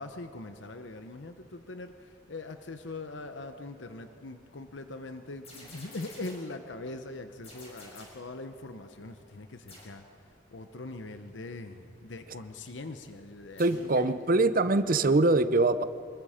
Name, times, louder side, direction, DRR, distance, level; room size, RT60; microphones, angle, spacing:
voice 1, 0.0-1.9 2.3-10.0 10.5-13.6 14.0-14.1, left 2 dB, 85° left, 8 dB, 0.9 m, -41 dB
sound 1, 5.4-6.6 7.4-8.3 9.7-10.0 13.6-13.9, left 2 dB, 35° left, 5.9 m, -50 dB
voice 2, 13.6-15.8, right 2 dB, 50° right, 13 dB, 0.7 m, -23 dB
25.0 x 21.5 x 5.1 m, 2.6 s
head